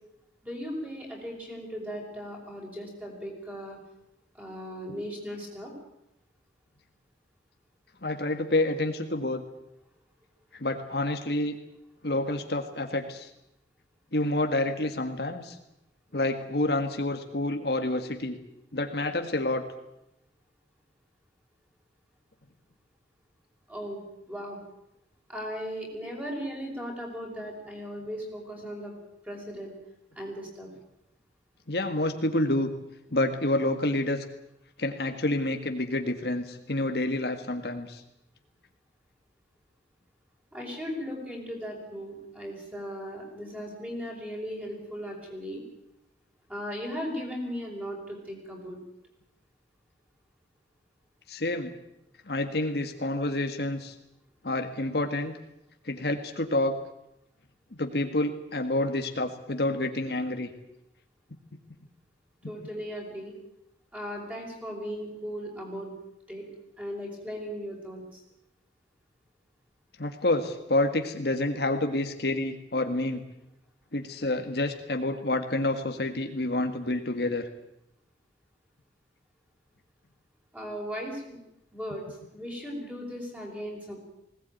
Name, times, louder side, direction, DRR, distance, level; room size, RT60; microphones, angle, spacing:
voice 1, 0.4-3.8 4.3-5.7 23.7-24.6 25.3-28.9 29.2-29.7 30.2-30.7 40.5-45.6 46.5-48.8 62.4-63.3 63.9-65.9 66.3-66.5 66.8-68.2 80.5-81.4 81.7-84.0, equal, 10° right, 0 dB, 5.8 m, -37 dB
voice 2, 8.0-9.4 10.5-11.6 12.0-13.3 14.1-15.6 16.1-18.4 18.7-19.6 31.7-32.7 33.1-34.2 34.8-38.0 51.3-51.7 52.3-53.9 54.4-55.3 55.8-56.7 57.8-60.5 70.0-73.2 73.9-77.5, left 2 dB, 60° left, 6 dB, 1.8 m, -28 dB
20.5 x 18.0 x 9.2 m, 0.84 s
head